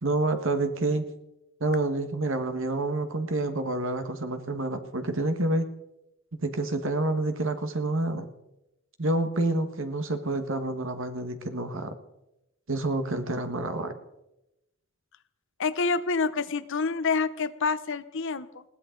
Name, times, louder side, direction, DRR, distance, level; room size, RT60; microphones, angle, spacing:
voice 1, 0.0-1.1 1.6-5.7 6.4-8.3 9.0-12.0 12.7-13.9, right 2 dB, 65° right, 9 dB, 1.6 m, -28 dB
voice 2, 15.6-18.6, left 4 dB, 65° left, 13 dB, 0.8 m, -27 dB
21.0 x 16.0 x 3.9 m, 0.91 s
head